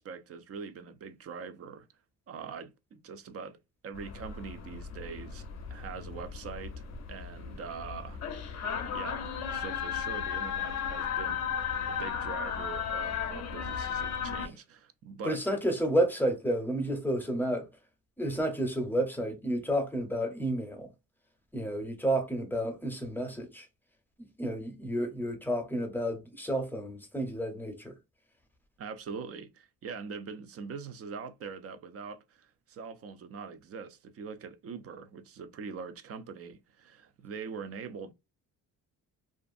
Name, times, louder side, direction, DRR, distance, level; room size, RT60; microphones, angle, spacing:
voice 1, 0.0-1.9 2.3-3.6 3.8-8.2 8.9-9.2 9.5-11.5 11.8-15.4 28.8-38.1, right 5 dB, 45° right, 0.4 m, -43 dB
sound 1, 3.9-14.5, left 7 dB, 50° left, 0.5 m, -35 dB
voice 2, 15.2-17.7 18.2-20.9 21.5-23.7 24.4-27.9, right 1 dB, 5° left, 0.7 m, -31 dB
2.5 x 2.4 x 2.4 m
cardioid pair, 105°, 35 cm